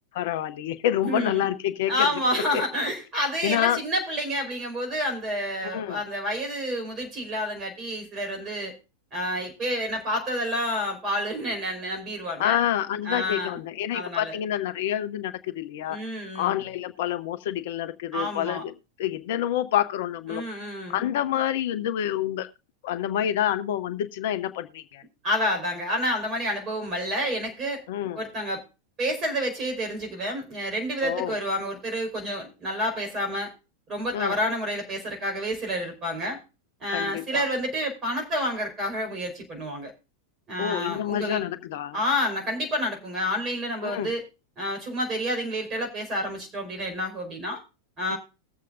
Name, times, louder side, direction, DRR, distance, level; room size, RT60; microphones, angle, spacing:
voice 1, 0.1-2.1 3.4-3.8 5.6-6.0 12.4-16.0 16.3-18.7 19.0-20.6 20.9-22.5 22.8-25.0 27.9-28.2 31.0-31.3 34.1-34.4 36.9-37.5 40.6-42.0 43.8-44.1, left 11 dB, 55° left, 12 dB, 0.7 m, -27 dB
voice 2, 1.0-1.4 1.9-8.7 9.1-12.6 13.0-13.6 13.9-14.4 15.9-16.6 18.1-18.6 20.3-21.0 25.2-27.8 28.1-28.6 29.0-33.5 33.9-36.4 36.8-39.9 40.5-41.4 41.9-44.2 44.6-47.6 48.0-48.2, equal, 25° right, 3 dB, 5.0 m, -29 dB
20.5 x 7.5 x 2.6 m, 0.29 s
figure-of-eight pair, 90°, 0 cm